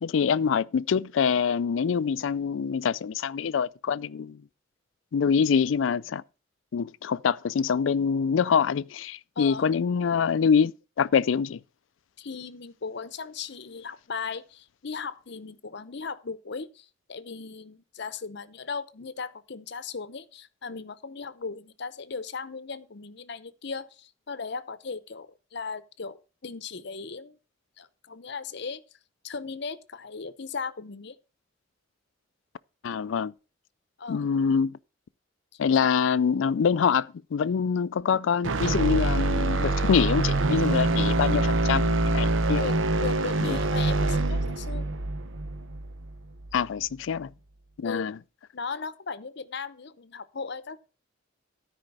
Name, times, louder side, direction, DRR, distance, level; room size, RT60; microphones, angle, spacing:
voice 1, 0.0-4.4 5.1-6.2 6.7-10.7 11.0-11.6 32.8-33.3 34.1-34.8 35.6-42.7 43.4-43.6 46.5-47.3 47.8-48.2, left 6 dB, 75° left, 0.4 m, -25 dB
voice 2, 9.4-9.7 12.2-27.4 27.8-28.8 29.2-31.2 34.0-34.3 35.8-35.9 42.6-44.9 47.8-48.1 48.5-50.8, left 5 dB, 60° left, 0.8 m, -37 dB
sound 1, 38.4-46.6, right 2 dB, 80° right, 0.8 m, -25 dB
13.0 x 5.1 x 5.4 m
head